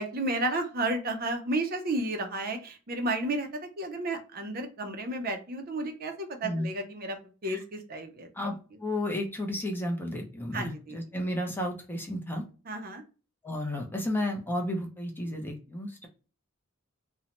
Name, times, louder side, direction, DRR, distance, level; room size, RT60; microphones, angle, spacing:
voice 1, 0.0-7.2 7.4-8.3 10.5-11.0 12.7-13.0, right 2 dB, 45° right, 6 dB, 0.5 m, -32 dB
voice 2, 8.3-12.5 13.4-16.1, left 1 dB, 10° left, 2 dB, 0.4 m, -32 dB
2.6 x 2.1 x 2.8 m, 0.34 s
head